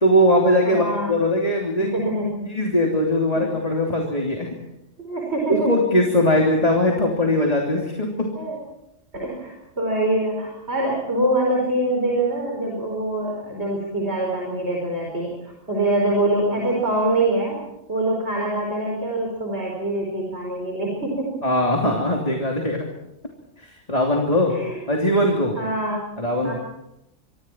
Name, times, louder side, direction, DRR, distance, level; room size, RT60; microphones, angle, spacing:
voice 1, 0.0-1.9 2.4-4.5 5.5-8.3 21.4-22.9 23.6-24.6 24.9-25.6 26.2-26.5, left 1 dB, 35° left, 0 dB, 3.2 m, -20 dB
voice 2, 0.6-1.1 1.8-2.3 5.0-5.7 8.4-8.6 9.1-17.6 17.9-21.3 24.5-24.8 25.6-26.0 26.4-26.5, right 1 dB, 65° right, -1 dB, 5.6 m, -24 dB
26.0 x 25.0 x 4.6 m, 0.83 s
omnidirectional pair, 1.2 m